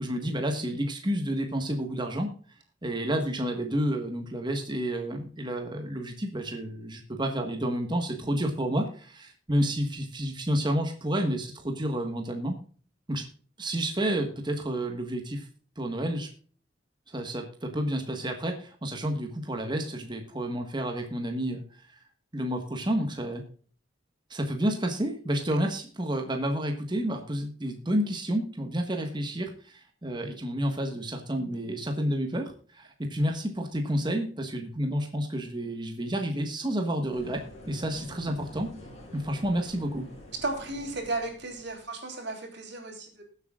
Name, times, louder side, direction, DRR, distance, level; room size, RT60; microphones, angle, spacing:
voice 1, 0.0-2.3 2.8-12.6 13.1-13.3 13.6-15.5 15.8-16.3 17.1-21.8 22.3-23.4 24.3-38.7 39.1-40.0, right 1 dB, 25° right, 4 dB, 1.4 m, -30 dB
sound 1, 37.1-41.9, left 1 dB, 35° left, 5.0 m, -48 dB
voice 2, 40.4-43.2, right 2 dB, 60° right, 2 dB, 3.8 m, -34 dB
20.5 x 8.1 x 2.4 m, 0.42 s
head